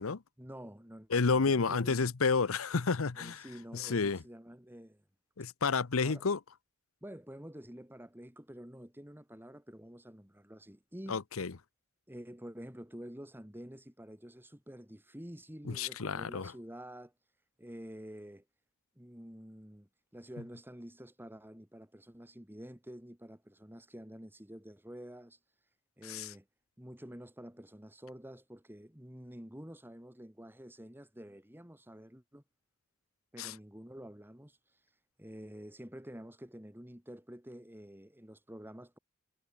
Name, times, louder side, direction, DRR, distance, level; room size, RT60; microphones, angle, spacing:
voice 1, 0.4-2.0 3.2-5.0 6.0-6.3 7.0-11.2 12.1-17.1 17.6-18.4 19.0-25.4 26.0-26.4 26.8-32.4 33.3-34.8 35.2-39.0, equal, 10° right, 3.1 m, -49 dB
voice 2, 1.1-3.4 3.7-4.2 5.4-6.4 11.1-11.5 15.7-16.5 26.0-26.3 33.4-33.5, left 4 dB, 75° left, 0.8 m, -30 dB
head